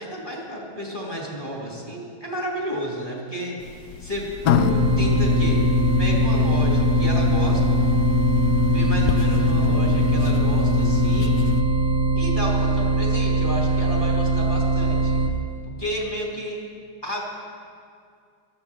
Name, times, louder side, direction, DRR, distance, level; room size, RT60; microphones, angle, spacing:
voice 1, 0.0-3.6 4.0-4.3 4.7-5.6 6.0-7.8 8.6-11.3 12.1-15.2 15.8-16.6 17.0-17.2, equal, 10° left, -4 dB, 2.6 m, -31 dB
sound 1, 3.6-11.6, left 9 dB, 70° left, 0.9 m, -23 dB
sound 2, 4.5-15.3, right 3 dB, 45° right, 1.0 m, -22 dB
18.0 x 13.5 x 3.6 m, 2.3 s
omnidirectional pair, 2.3 m